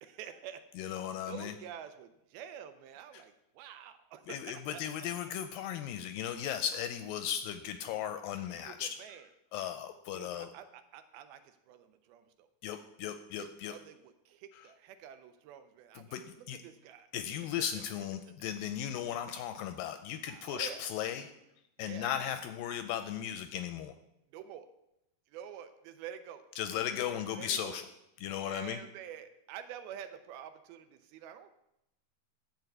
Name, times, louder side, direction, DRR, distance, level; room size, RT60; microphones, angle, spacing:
voice 1, 0.0-0.7 1.3-4.8 8.5-9.3 10.1-12.5 13.4-17.1 17.6-17.7 18.3-18.4 20.3-20.8 21.8-22.1 24.3-24.7 25.3-26.4 27.3-27.8 28.4-31.5, right 9 dB, 85° right, 10 dB, 2.6 m, -48 dB
voice 2, 0.8-1.5 3.1-3.2 4.3-9.0 9.5-10.5 12.6-13.8 16.0-16.2 16.5-16.6 17.1-21.3 21.8-23.9 26.6-27.8 28.2-28.8, left 10 dB, 80° left, 9 dB, 2.1 m, -36 dB
11.0 x 4.8 x 7.8 m, 0.84 s
omnidirectional pair, 4.4 m